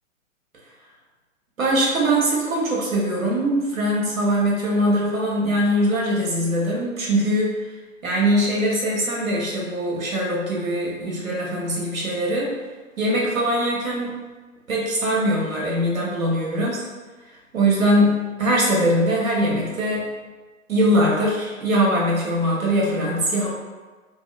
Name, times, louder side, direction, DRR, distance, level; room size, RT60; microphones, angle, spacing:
voice 1, 1.6-7.5 8.0-12.5 13.0-14.1 14.7-16.8 17.5-20.1 20.7-23.5, equal, 85° right, -4 dB, 1.0 m, -22 dB
2.8 x 2.7 x 2.4 m, 1.3 s
figure-of-eight pair, 115°, 40 cm